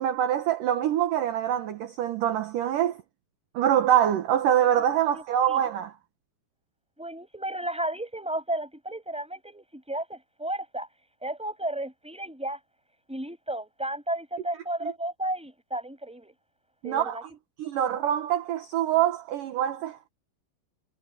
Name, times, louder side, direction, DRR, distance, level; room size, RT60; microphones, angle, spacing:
voice 1, 0.0-3.0 3.5-5.9 14.8-14.9 16.8-17.2 17.6-20.1, right 10 dB, 65° right, 2.3 m, -25 dB
voice 2, 5.1-5.6 7.0-10.9 11.2-12.6 13.1-16.3 16.8-17.2, right 1 dB, ahead, 5.4 m, -33 dB
omnidirectional pair, 5.1 m